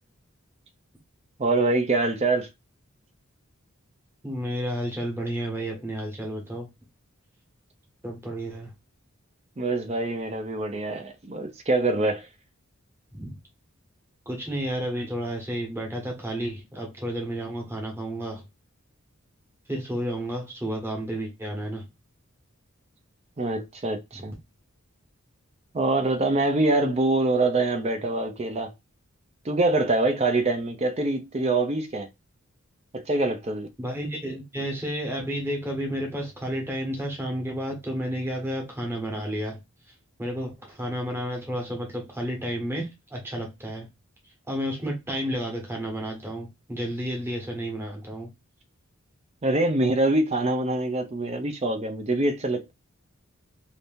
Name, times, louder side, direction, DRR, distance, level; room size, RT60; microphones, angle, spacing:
voice 1, 1.4-2.5 9.6-12.3 23.4-24.3 25.7-28.7 29.4-32.1 32.9-33.7 49.4-52.7, right 2 dB, 30° right, 0.5 m, -24 dB
voice 2, 4.2-6.7 8.0-8.7 13.1-13.3 14.3-18.4 19.7-21.9 33.8-39.6 39.9-40.0 40.2-43.9 44.2-48.3, equal, 10° right, 1.0 m, -31 dB
2.7 x 2.6 x 3.5 m
head